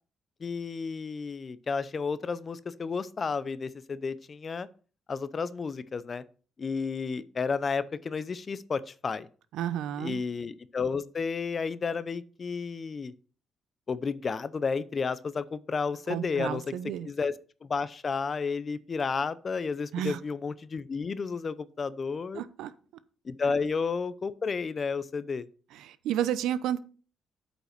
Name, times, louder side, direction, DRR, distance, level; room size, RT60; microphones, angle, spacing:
voice 1, 0.4-4.7 5.1-6.2 6.6-9.3 10.0-13.1 13.9-16.7 17.0-17.4 17.6-22.4 23.2-25.4, left 5 dB, 40° left, 0.7 m, -32 dB
voice 2, 9.5-10.2 16.1-17.1 19.9-20.2 22.3-22.7 23.5-23.6 25.7-26.8, right 11 dB, 85° right, 0.7 m, -31 dB
8.7 x 5.4 x 6.6 m
cardioid pair, 90°, 0 cm